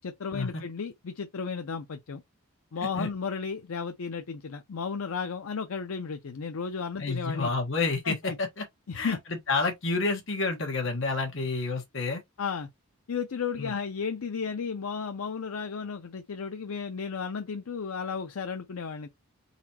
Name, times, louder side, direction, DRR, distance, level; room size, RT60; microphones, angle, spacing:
voice 1, 0.0-2.2 2.7-7.5 8.0-8.4 8.9-9.2 12.4-12.7 13.1-19.1, left 5 dB, 75° left, 0.5 m, -34 dB
voice 2, 7.0-8.6 8.9-12.2 13.6-13.7, left 3 dB, 55° left, 1.4 m, -29 dB
4.1 x 4.0 x 2.9 m
head